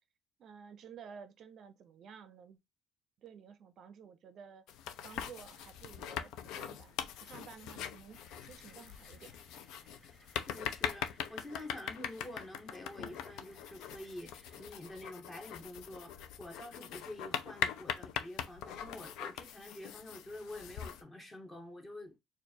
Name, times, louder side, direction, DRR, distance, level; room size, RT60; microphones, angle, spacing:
voice 1, 0.4-2.6 3.2-4.7 5.0-9.4, right 7 dB, 45° right, 0.5 m, -53 dB
sound 1, 4.7-21.0, left 9 dB, 80° left, 0.5 m, -42 dB
sound 2, 8.1-14.7, equal, 5° right, 1.4 m, -64 dB
voice 2, 10.5-22.2, left 1 dB, 15° left, 0.9 m, -48 dB
4.4 x 2.5 x 2.7 m
cardioid pair, 160°, 0 cm